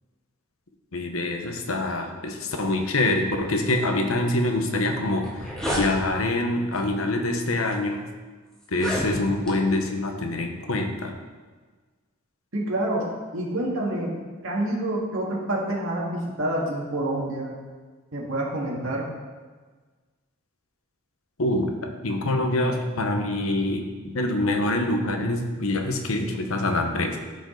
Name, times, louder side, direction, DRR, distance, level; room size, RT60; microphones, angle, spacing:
voice 1, 0.9-8.0 8.7-11.1 21.4-27.2, left 2 dB, 80° left, 4 dB, 1.0 m, -25 dB
sound 1, 5.2-5.9 6.7-7.0 7.7-7.8 8.6-9.6, equal, 5° left, 1.6 m, -30 dB
voice 2, 12.5-14.2 14.4-17.6 18.1-19.1, right 1 dB, 70° right, -2 dB, 2.0 m, -27 dB
13.0 x 5.2 x 3.9 m, 1.4 s
head